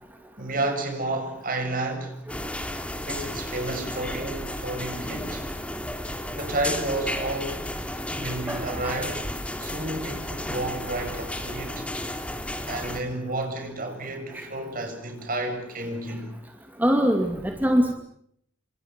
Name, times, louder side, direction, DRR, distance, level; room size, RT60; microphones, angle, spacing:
voice 1, 0.4-2.2 3.1-5.5 6.3-7.7 8.1-9.2 9.6-11.9 12.7-16.3, right 2 dB, 45° right, 6.9 m, -31 dB
sound 1, 2.3-13.0, left 1 dB, 5° left, 2.7 m, -33 dB
voice 2, 8.5-9.0 14.3-14.4 16.8-17.9, equal, 10° right, 2.4 m, -23 dB
28.5 x 26.5 x 5.8 m
head